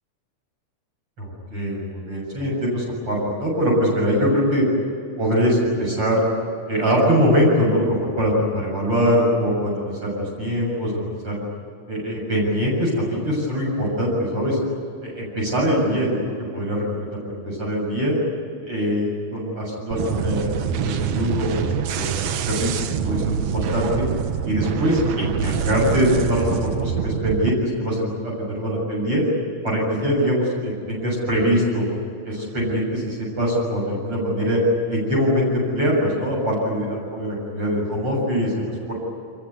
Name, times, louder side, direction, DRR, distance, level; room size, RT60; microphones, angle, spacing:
voice 1, 1.2-4.6 5.2-6.2 6.7-11.4 11.9-14.6 15.0-16.2 16.5-18.1 18.6-22.7 23.0-24.0 24.4-29.2 29.6-31.8 32.2-34.6 34.9-38.9, equal, 40° right, -3 dB, 8.1 m, -23 dB
sound 1, 19.9-27.5, right 8 dB, 65° right, 1.9 m, -25 dB
26.0 x 22.5 x 9.5 m, 2.5 s
omnidirectional pair, 3.6 m